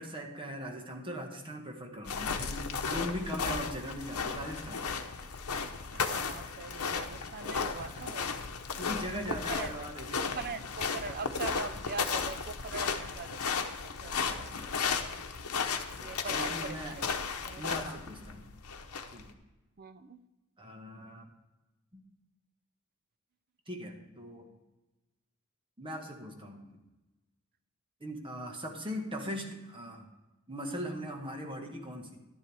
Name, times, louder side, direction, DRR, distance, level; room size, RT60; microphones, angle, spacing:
voice 1, 0.0-4.8 7.0-8.1 8.8-10.6 11.2-11.6 14.1-14.8 16.3-17.0 17.6-18.4 19.1-19.3 20.6-21.3 21.9-22.0 23.7-24.5 25.8-26.8 28.0-30.1 30.5-32.2, equal, 25° right, 2 dB, 1.5 m, -40 dB
sound 1, 2.1-19.3, left 5 dB, 80° left, 0.9 m, -35 dB
voice 2, 5.9-8.3 9.3-9.9 10.2-13.8 14.0-14.8 16.0-17.1 17.4-17.9 19.8-20.2, right 5 dB, 45° right, 11 dB, 0.6 m, -42 dB
11.5 x 10.0 x 3.4 m, 1.1 s
head